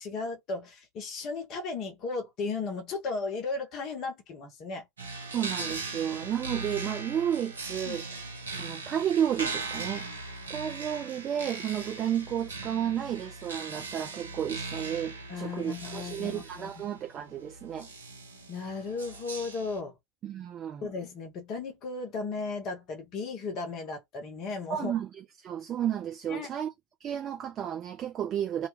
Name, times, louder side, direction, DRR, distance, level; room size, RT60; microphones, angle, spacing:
voice 1, 0.0-4.9 7.9-8.0 15.3-16.8 18.5-19.9 20.8-24.9 26.3-26.5, left 4 dB, 35° left, 0.7 m, -35 dB
sound 1, 5.0-19.8, right 3 dB, 75° right, 0.7 m, -39 dB
voice 2, 5.3-8.0 8.5-10.1 10.5-17.9 20.2-20.9 24.7-26.7 27.0-28.7, right 10 dB, 30° right, 0.4 m, -32 dB
2.2 x 2.2 x 2.9 m
figure-of-eight pair, 90°, 0 cm